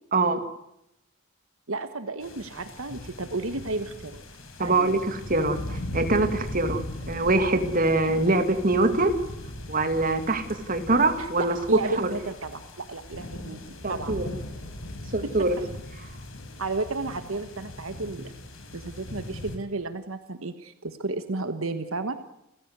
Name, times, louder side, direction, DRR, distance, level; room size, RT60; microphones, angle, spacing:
voice 1, 0.1-0.4 4.6-9.1 9.7-11.6 12.0-12.1 13.8-14.3 15.1-15.6, right 2 dB, 40° right, 7 dB, 2.2 m, -24 dB
voice 2, 1.7-4.2 4.6-5.0 11.2-13.6 13.9-14.1 15.2-15.3 16.6-18.3 18.7-22.1, right 3 dB, 75° right, 9 dB, 1.4 m, -32 dB
sound 1, 2.2-19.6, left 1 dB, 70° left, 4.3 m, -39 dB
29.5 x 15.0 x 8.1 m, 0.81 s
head